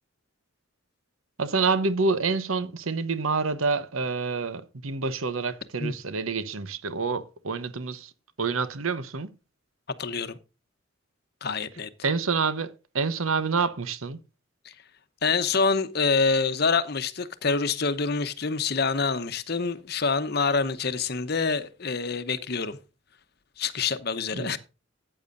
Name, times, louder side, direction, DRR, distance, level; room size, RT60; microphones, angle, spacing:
voice 1, 1.4-8.1 8.4-9.3 12.0-14.2 24.3-24.6, right 4 dB, 85° right, 1.0 m, -27 dB
voice 2, 9.9-10.4 11.4-11.9 14.6-14.7 15.2-22.8 23.6-24.6, left 4 dB, 50° left, 0.9 m, -26 dB
14.0 x 8.8 x 2.6 m
head